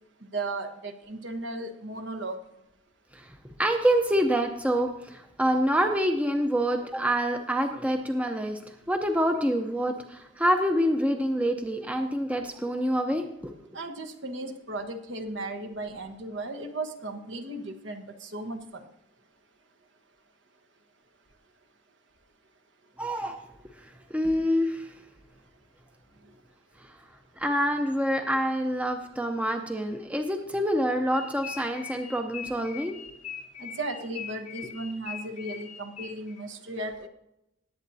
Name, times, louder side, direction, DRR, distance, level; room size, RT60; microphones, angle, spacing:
voice 1, 0.3-2.4 13.7-18.8 33.6-37.1, right 2 dB, 60° right, 6 dB, 1.2 m, -35 dB
voice 2, 3.6-8.6 8.9-13.7 23.0-23.4 23.8-24.9 27.4-33.0, equal, 5° right, 4 dB, 0.7 m, -26 dB
sound 1, 31.1-36.4, left 8 dB, 35° left, 0.7 m, -41 dB
19.0 x 8.5 x 2.7 m, 0.85 s
head